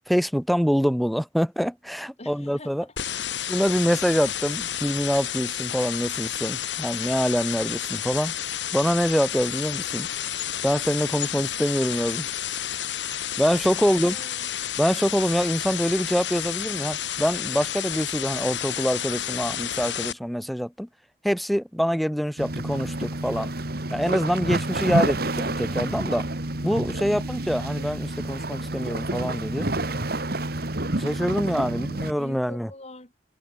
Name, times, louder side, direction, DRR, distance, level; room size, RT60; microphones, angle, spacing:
voice 1, 0.1-2.8 3.5-8.3 8.7-10.1 10.6-12.3 13.4-14.2 14.8-20.9 21.2-23.5 23.9-26.3 26.6-29.7 30.9-32.7, equal, ahead, 1.0 m, -25 dB
voice 2, 2.2-3.3 13.7-14.5 27.0-27.3 31.6-33.1, left 1 dB, 35° left, 5.2 m, -43 dB
sound 1, 3.0-20.1, left 10 dB, 75° left, 2.3 m, -31 dB
sound 2, 22.4-32.1, right 2 dB, 55° right, 2.4 m, -29 dB
head